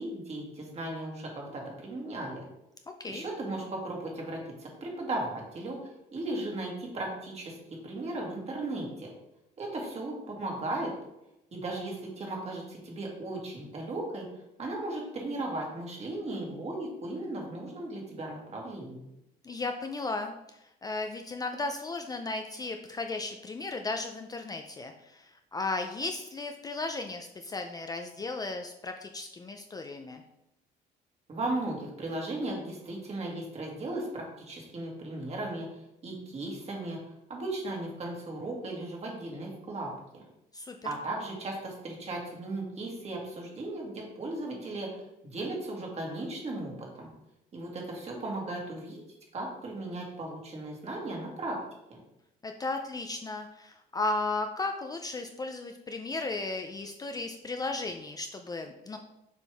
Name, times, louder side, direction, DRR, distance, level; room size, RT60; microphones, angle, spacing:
voice 1, 0.0-2.4 3.1-5.8 6.1-9.1 9.6-10.9 11.5-14.2 14.6-19.0 31.3-35.7 36.0-37.0 37.3-39.9 40.8-47.1 47.5-49.1 49.3-51.6 51.9-52.0, right 2 dB, 40° right, -1 dB, 2.0 m, -36 dB
voice 2, 19.4-20.3 20.8-30.2 40.5-40.9 52.4-59.0, left 3 dB, 20° left, 5 dB, 0.4 m, -35 dB
7.0 x 4.4 x 3.4 m, 0.86 s
cardioid pair, 110°, 17 cm